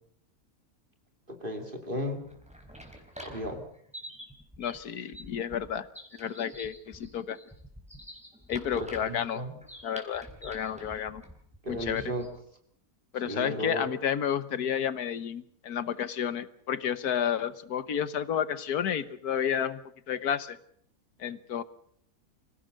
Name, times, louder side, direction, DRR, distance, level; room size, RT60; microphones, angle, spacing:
voice 1, 1.3-2.2 3.2-3.6 8.8-9.5 11.6-12.3 13.2-13.9, equal, 35° right, 4 dB, 2.6 m, -34 dB
sound 1, 2.2-12.4, equal, 5° right, 4.0 m, -48 dB
voice 2, 4.6-5.9 6.2-7.4 8.5-9.4 9.8-11.2 11.7-12.1 13.1-19.8 20.1-20.6 21.2-21.6, left 8 dB, 85° left, 14 dB, 1.6 m, -31 dB
25.5 x 17.0 x 6.6 m, 0.66 s
omnidirectional pair, 1.6 m